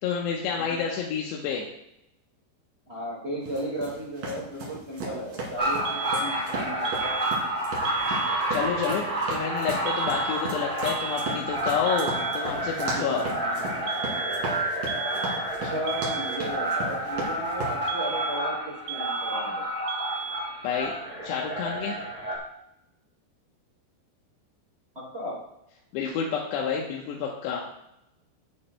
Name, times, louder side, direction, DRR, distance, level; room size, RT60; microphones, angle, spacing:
voice 1, 0.0-1.7 8.5-9.0 9.3-13.2 20.6-20.9 21.2-22.0 25.9-27.7, left 6 dB, 80° left, -1 dB, 3.0 m, -29 dB
voice 2, 2.9-7.1 12.9-13.2 13.6-13.9 15.6-19.7 24.9-25.4, equal, 75° right, -3 dB, 0.6 m, -35 dB
sound 1, 3.5-17.8, right 2 dB, 55° right, 3.9 m, -36 dB
sound 2, 5.6-22.4, right 1 dB, 35° right, 1.2 m, -30 dB
sound 3, 5.9-6.5 6.9-7.5 7.9-8.5 9.9-10.5 10.9-11.5 11.9-12.5 13.9-14.5 14.9-15.5 15.9-16.5 17.9-18.6 18.9-19.6 19.9-20.6, right 7 dB, 90° right, 2.9 m, -35 dB
15.5 x 9.2 x 2.2 m, 0.83 s
omnidirectional pair, 5.0 m